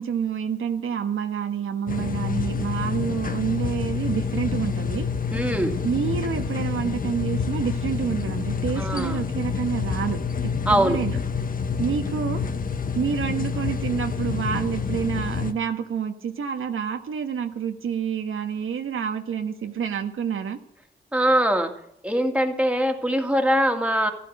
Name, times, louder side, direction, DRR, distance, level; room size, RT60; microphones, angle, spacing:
voice 1, 0.0-5.1 5.8-11.2 11.8-12.4 12.9-20.6, right 7 dB, 80° right, 6 dB, 1.4 m, -28 dB
sound 1, 1.9-15.5, left 5 dB, 45° left, 1.1 m, -28 dB
voice 2, 5.3-5.8 8.8-9.2 10.7-11.0 21.1-21.7 22.0-24.1, right 1 dB, 5° right, 4 dB, 2.1 m, -22 dB
14.0 x 12.5 x 6.6 m, 0.73 s
wide cardioid pair, 115°, 20 cm